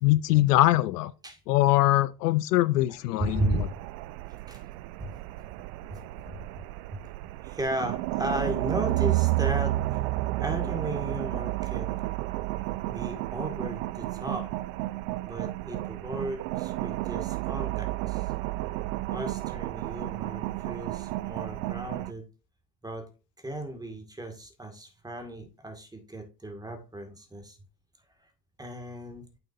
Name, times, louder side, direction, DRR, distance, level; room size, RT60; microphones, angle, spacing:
voice 1, 0.0-1.1 1.5-3.6, left 16 dB, 70° left, 0.7 m, -22 dB
voice 2, 3.2-3.7 4.5-4.6 5.0-5.1 5.9-6.0 6.3-6.6 6.9-7.0 7.4-9.8 10.4-12.0 12.8-14.5 15.2-18.3 19.1-22.2 22.8-23.1 23.4-27.6 28.6-29.3, right 1 dB, 10° right, 2.2 m, -35 dB
sound 1, 3.2-22.1, right 18 dB, 55° right, 0.6 m, -31 dB
8.6 x 6.8 x 2.7 m
hypercardioid pair, 90°, 49 cm